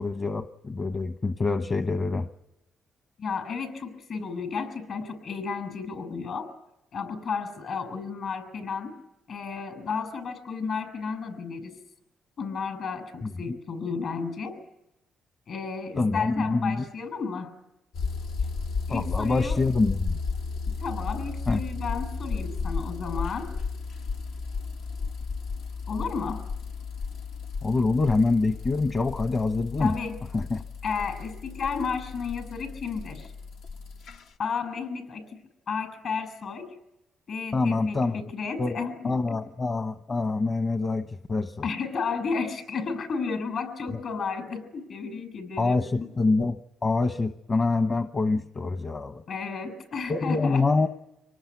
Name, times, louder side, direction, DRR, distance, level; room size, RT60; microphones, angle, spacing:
voice 1, 0.0-2.3 13.5-13.6 16.0-16.8 18.9-20.2 21.5-21.6 27.6-29.9 30.3-30.6 37.5-38.2 38.6-38.8 39.0-41.7 45.6-49.2 50.1-50.9, left 3 dB, 35° left, 8 dB, 1.1 m, -25 dB
voice 2, 3.2-6.5 6.9-9.0 9.3-11.8 12.4-14.6 15.5-17.5 18.9-19.6 20.7-23.5 25.9-26.4 29.8-30.1 30.8-33.3 34.4-35.3 35.7-36.7 37.3-39.2 41.6-46.1 49.3-50.6, left 5 dB, 60° left, 11 dB, 6.4 m, -32 dB
sound 1, 17.9-34.2, left 4 dB, 80° left, 1.1 m, -34 dB
26.0 x 19.5 x 9.5 m, 0.89 s
cardioid pair, 90°, 0 cm